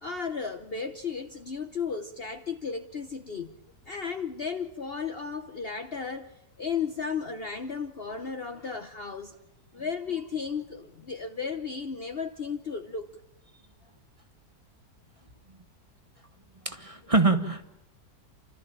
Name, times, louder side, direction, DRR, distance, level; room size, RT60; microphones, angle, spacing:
voice 1, 0.0-3.5 3.9-9.4 9.7-13.1, left 5 dB, 45° left, 1.0 m, -34 dB
voice 2, 16.6-17.6, right 3 dB, 20° right, 1.5 m, -24 dB
29.5 x 13.5 x 8.8 m
omnidirectional pair, 1.7 m